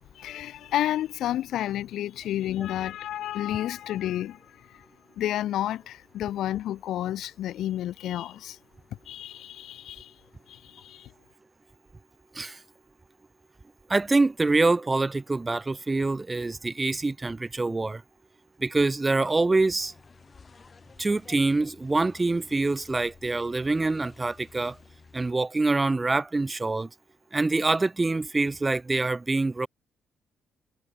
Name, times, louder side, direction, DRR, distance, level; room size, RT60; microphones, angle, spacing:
voice 1, 0.1-4.4 4.7-4.8 5.2-8.6 9.1-10.1 10.5-11.1, left 12 dB, 80° left, 0.6 m, -31 dB
voice 2, 13.9-18.0 18.6-19.9 21.0-24.8 25.1-26.9 27.3-29.7, right 3 dB, 20° right, 0.3 m, -25 dB
sound 1, 19.8-25.3, left 4 dB, 35° left, 3.7 m, -53 dB
cardioid pair, 90°, 0 cm